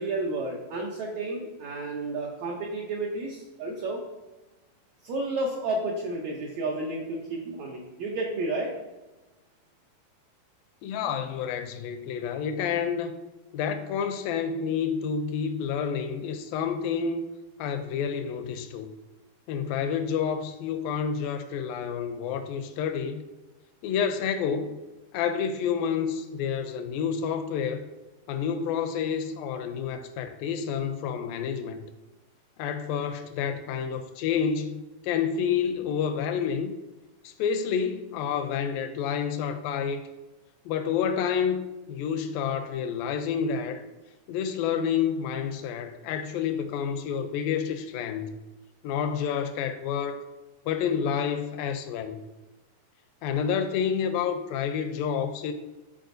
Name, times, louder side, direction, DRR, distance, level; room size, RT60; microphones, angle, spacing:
voice 1, 0.0-4.0 5.0-8.7, right 2 dB, 80° right, 1.6 m, -31 dB
voice 2, 10.8-13.1 13.5-17.3 17.6-18.9 19.5-23.2 23.8-24.8 25.1-27.9 28.3-31.9 32.6-36.7 37.2-40.0 40.7-43.8 44.3-48.3 48.8-50.2 50.7-52.2 53.2-55.5, left 7 dB, 80° left, 2.3 m, -29 dB
12.5 x 4.3 x 2.6 m
omnidirectional pair, 4.3 m